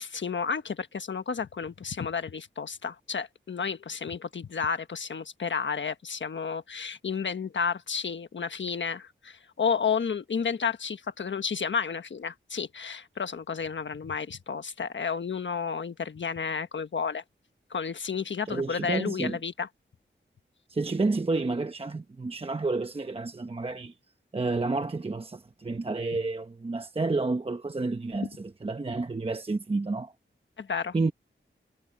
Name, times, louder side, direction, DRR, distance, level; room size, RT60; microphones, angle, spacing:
voice 1, 0.0-17.2 17.7-19.7 28.2-28.3 30.6-30.9, left 6 dB, 65° left, 1.3 m, -31 dB
voice 2, 18.5-19.4 20.7-23.9 24.3-30.1 30.9-31.1, right 3 dB, 25° right, 0.9 m, -30 dB
wide cardioid pair, 120°, 21 cm